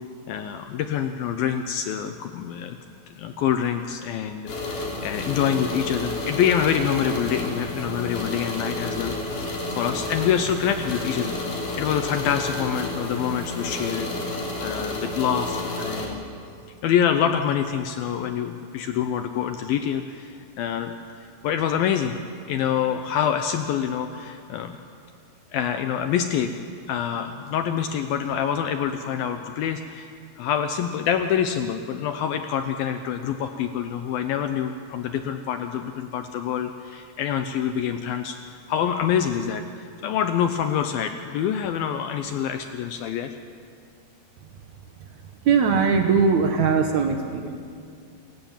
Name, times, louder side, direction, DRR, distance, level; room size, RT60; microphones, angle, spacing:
voice 1, 0.3-2.8 3.2-9.1 9.4-11.4 11.8-16.2 16.8-20.9 21.4-22.2 22.5-24.8 25.5-26.5 26.9-30.1 30.4-38.4 38.7-39.6 40.0-43.3, left 8 dB, 75° left, 7 dB, 2.2 m, -26 dB
sound 1, 4.5-16.1, left 2 dB, 50° left, 4.6 m, -30 dB
voice 2, 45.4-47.6, right 5 dB, 75° right, 4 dB, 1.7 m, -20 dB
28.0 x 16.5 x 7.3 m, 2.3 s
omnidirectional pair, 5.0 m